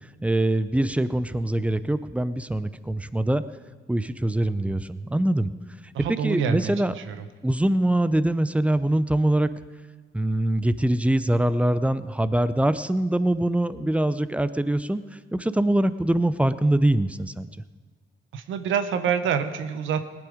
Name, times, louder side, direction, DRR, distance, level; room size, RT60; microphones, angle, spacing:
voice 1, 0.2-3.4 3.9-5.5 6.2-6.9 7.4-9.5 10.1-15.0 15.3-17.5, right 1 dB, 5° right, 14 dB, 0.6 m, -23 dB
voice 2, 5.9-6.8 7.1-7.2 18.3-20.1, right 7 dB, 80° right, 9 dB, 1.0 m, -26 dB
19.0 x 10.0 x 5.0 m, 1.5 s
cardioid pair, 90°, 20 cm